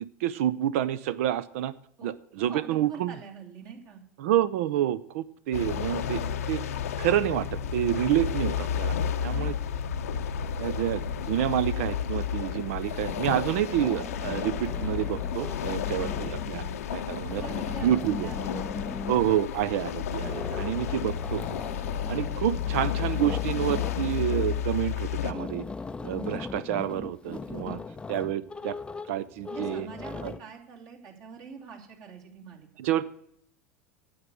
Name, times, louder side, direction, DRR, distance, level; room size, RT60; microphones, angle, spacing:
voice 1, 0.2-1.7 2.0-3.1 4.2-6.2 6.5-6.6 7.0-9.0 9.2-9.5 10.6-17.4 17.8-18.3 19.1-21.4 22.1-25.6 26.0-27.8 28.1-28.8 29.1-29.9 30.2-30.3 32.8-33.1, right 12 dB, 65° right, 16 dB, 0.5 m, -28 dB
voice 2, 2.5-4.0 9.3-9.7 16.4-16.8 17.1-19.1 27.5-27.8 29.5-32.7, right 6 dB, 50° right, 0 dB, 2.7 m, -45 dB
sound 1, 5.5-25.3, left 8 dB, 75° left, 0.7 m, -32 dB
sound 2, 13.6-16.7 17.1-19.3 20.1-30.4, left 4 dB, 15° left, 0.5 m, -39 dB
9.4 x 8.0 x 6.8 m, 0.70 s
hypercardioid pair, 85°, 8 cm